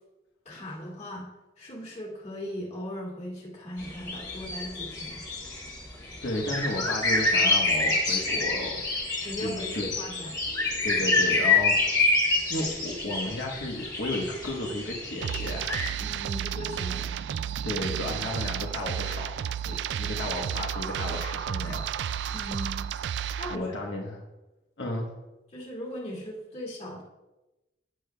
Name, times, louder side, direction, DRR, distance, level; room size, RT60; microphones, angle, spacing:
voice 1, 0.5-1.3 1.6-5.2 9.2-10.4 16.0-17.2 22.3-22.9 23.4-23.8 24.9-25.0 25.5-27.0, equal, 40° left, -3 dB, 2.3 m, -38 dB
sound 1, 3.8-15.9, left 3 dB, 20° left, 1.8 m, -27 dB
voice 2, 6.2-8.8 9.4-9.9 10.8-12.0 12.5-15.8 17.5-21.9 23.5-24.2 24.8-25.1, left 1 dB, 75° left, -1 dB, 1.2 m, -33 dB
sound 2, 15.2-23.6, right 9 dB, 70° right, 0.3 m, -32 dB
16.0 x 6.7 x 2.3 m, 1.0 s
head